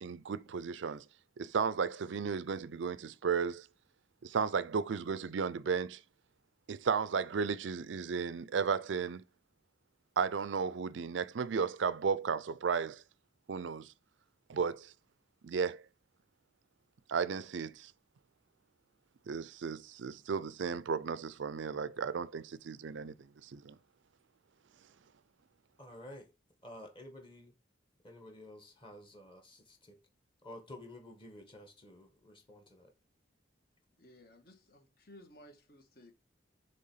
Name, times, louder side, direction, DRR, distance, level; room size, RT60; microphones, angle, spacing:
voice 1, 0.0-1.0 1.4-3.7 4.2-6.0 6.7-9.2 10.2-13.0 13.5-13.9 14.5-14.9 15.4-15.8 17.1-17.9 19.3-23.8, right 6 dB, 80° right, 0.5 m, -34 dB
voice 2, 25.8-26.3 26.6-27.5 28.0-30.0 30.4-32.9, left 1 dB, 25° left, 1.6 m, -51 dB
voice 3, 34.0-36.1, left 1 dB, 55° left, 1.5 m, -57 dB
7.7 x 3.4 x 5.6 m
head